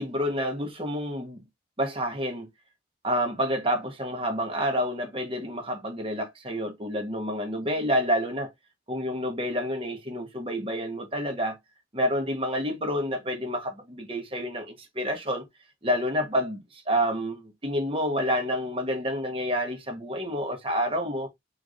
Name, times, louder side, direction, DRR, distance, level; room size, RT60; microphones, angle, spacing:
voice 1, 0.0-1.4 1.8-2.5 3.0-8.5 8.9-11.6 11.9-15.5 15.8-21.3, equal, 30° right, 1.1 m, -28 dB
4.6 x 3.2 x 2.5 m
head